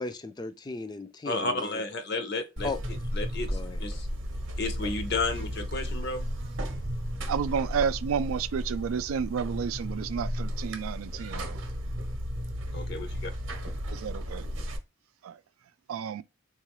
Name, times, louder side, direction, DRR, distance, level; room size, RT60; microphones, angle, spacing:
voice 1, 0.0-1.8 2.6-2.8 3.5-3.8, left 3 dB, 20° left, 0.3 m, -36 dB
voice 2, 1.2-4.1 4.5-6.2 12.7-13.3, left 3 dB, 50° left, 0.6 m, -32 dB
Buzz, 2.6-14.8, equal, 60° right, 0.8 m, -34 dB
sound 1, 3.9-10.5, right 3 dB, 90° left, 0.7 m, -50 dB
voice 3, 7.3-11.6 13.9-14.5 15.2-15.4 15.9-16.2, right 7 dB, 80° right, 0.3 m, -31 dB
3.8 x 2.3 x 3.0 m
head